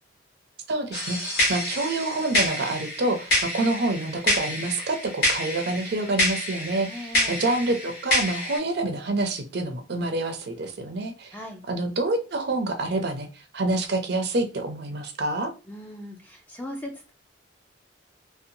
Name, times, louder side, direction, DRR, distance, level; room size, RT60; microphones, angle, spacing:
voice 1, 0.7-11.4 11.7-13.3 13.5-15.5, right 2 dB, 55° right, 5 dB, 0.5 m, -27 dB
sound 1, 0.9-8.6, left 1 dB, 50° left, 1.2 m, -27 dB
voice 2, 6.9-7.4 11.3-11.6 15.7-17.1, left 1 dB, 10° left, 2 dB, 0.4 m, -38 dB
2.7 x 2.1 x 2.6 m, 0.32 s
head